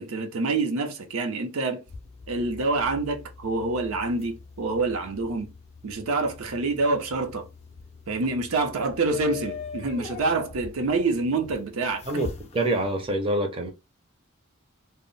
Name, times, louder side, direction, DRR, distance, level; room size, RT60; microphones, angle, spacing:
voice 1, 0.0-1.8 2.3-5.5 5.8-7.5 8.1-12.0, right 3 dB, 80° right, 0.6 m, -26 dB
sound 1, 1.9-13.2, left 4 dB, 30° left, 0.4 m, -43 dB
voice 2, 12.5-13.7, right 1 dB, 25° right, 0.5 m, -25 dB
2.1 x 2.0 x 3.7 m
head